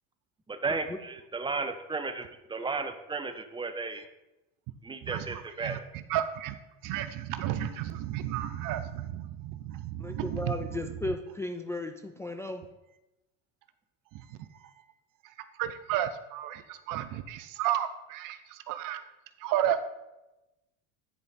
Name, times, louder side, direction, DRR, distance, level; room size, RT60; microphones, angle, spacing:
voice 1, 0.5-4.1 4.8-5.9, right 4 dB, 15° right, 8 dB, 0.8 m, -34 dB
voice 2, 5.0-5.8 6.1-6.5 6.8-10.5 15.6-19.0 19.4-19.9, right 11 dB, 55° right, 12 dB, 0.7 m, -32 dB
voice 3, 10.0-12.6, left 2 dB, 5° left, 4 dB, 0.4 m, -35 dB
9.8 x 5.0 x 4.2 m, 0.99 s
hypercardioid pair, 85°, 38 cm